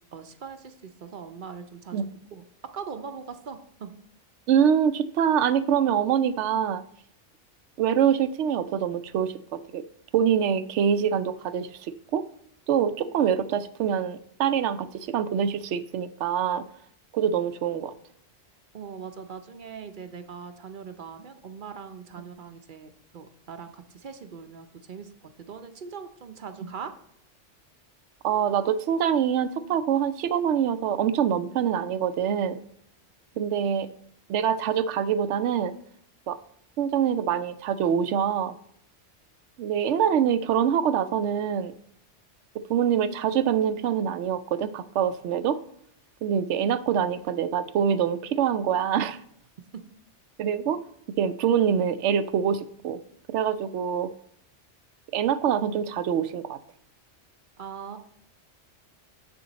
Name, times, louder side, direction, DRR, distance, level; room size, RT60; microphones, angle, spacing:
voice 1, 0.1-2.0 2.3-2.4 2.7-3.9 18.7-25.1 25.4-26.9 49.7-49.8 57.6-58.0, right 6 dB, 50° right, 8 dB, 0.7 m, -41 dB
voice 2, 4.5-6.8 7.8-9.8 10.1-12.2 12.7-16.6 17.1-17.9 28.2-32.6 33.4-33.9 34.3-35.7 36.3-36.4 36.8-38.5 39.6-41.7 42.7-45.6 46.2-49.2 50.4-50.8 51.2-53.0 53.3-54.1 55.1-56.6, right 8 dB, 80° right, 14 dB, 0.9 m, -25 dB
7.4 x 7.0 x 4.0 m, 0.71 s
omnidirectional pair, 1.2 m